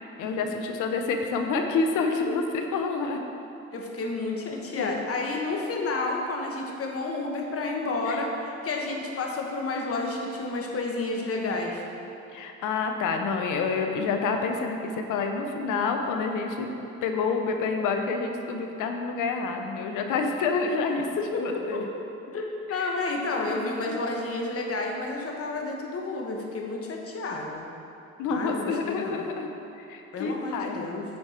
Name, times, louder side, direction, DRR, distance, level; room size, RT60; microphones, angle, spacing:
voice 1, 0.2-3.2 4.8-5.0 8.1-8.2 12.3-16.7 17.0-21.1 21.4-21.8 22.8-22.9 23.5-23.7 28.2-29.5 29.9-30.8, left 4 dB, 90° left, 4 dB, 0.7 m, -28 dB
voice 2, 3.7-11.8 21.2-22.0 22.3-27.7 28.3-29.2 30.1-31.0, left 3 dB, 50° left, 0 dB, 1.2 m, -31 dB
8.6 x 4.7 x 4.3 m, 2.9 s
cardioid pair, 90°, 30 cm